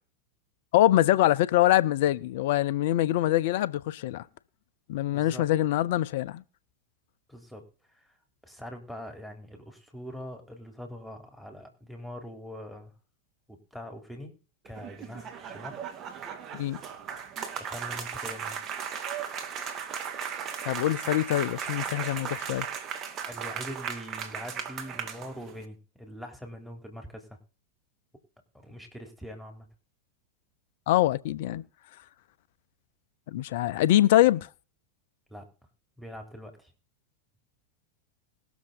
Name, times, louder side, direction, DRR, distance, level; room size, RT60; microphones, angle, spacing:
voice 1, 0.7-4.2 4.9-6.4 16.5-16.8 20.6-22.7 30.9-31.6 33.3-34.5, left 14 dB, 50° left, 0.8 m, -24 dB
voice 2, 5.1-5.5 7.3-7.7 8.0-8.1 8.4-12.9 13.5-14.4 14.7-15.8 17.5-18.6 23.2-27.4 28.5-29.7 35.3-35.5 36.0-36.7, equal, ahead, 3.7 m, -43 dB
sound 1, 14.6-25.6, right 7 dB, 30° right, 2.3 m, -36 dB
20.5 x 7.0 x 4.0 m
figure-of-eight pair, 90°, 0 cm